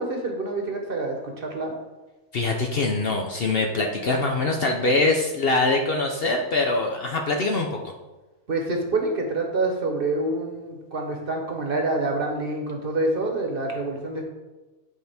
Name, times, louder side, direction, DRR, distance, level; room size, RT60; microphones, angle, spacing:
voice 1, 0.0-1.7 8.5-14.2, right 2 dB, 45° right, 2 dB, 1.1 m, -27 dB
voice 2, 2.3-7.8, left 2 dB, 55° left, 2 dB, 0.8 m, -23 dB
9.5 x 4.6 x 3.4 m, 1.1 s
omnidirectional pair, 1.4 m